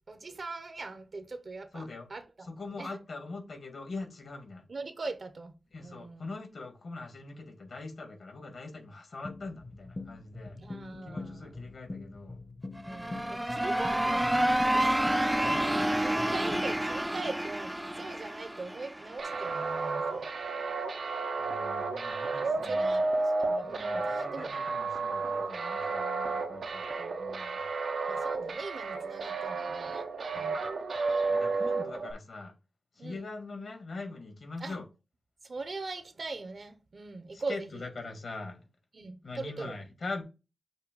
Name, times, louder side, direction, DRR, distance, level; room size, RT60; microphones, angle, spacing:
voice 1, 0.1-1.8 2.1-2.5 2.8-2.9 4.7-5.5 5.8-6.2 10.6-11.5 12.8-15.1 15.4-20.3 22.4-24.5 28.1-30.1 30.3-30.7 33.0-33.3 34.6-34.8 35.4-37.6 38.9-39.7, right 3 dB, 50° right, 0.8 m, -41 dB
voice 2, 1.7-2.1 2.4-4.7 5.7-10.6 11.0-12.4 15.3-15.8 21.4-23.0 23.6-27.6 30.4-30.5 31.3-32.5 33.0-34.9 37.3-38.7 39.2-40.2, left 3 dB, 65° left, 1.9 m, -43 dB
sound 1, 9.2-17.0, left 2 dB, 30° left, 0.9 m, -44 dB
sound 2, 12.8-19.6, right 1 dB, 10° right, 0.5 m, -29 dB
sound 3, 19.2-32.1, right 3 dB, 90° right, 1.0 m, -32 dB
6.5 x 2.8 x 5.3 m
wide cardioid pair, 125°, 0 cm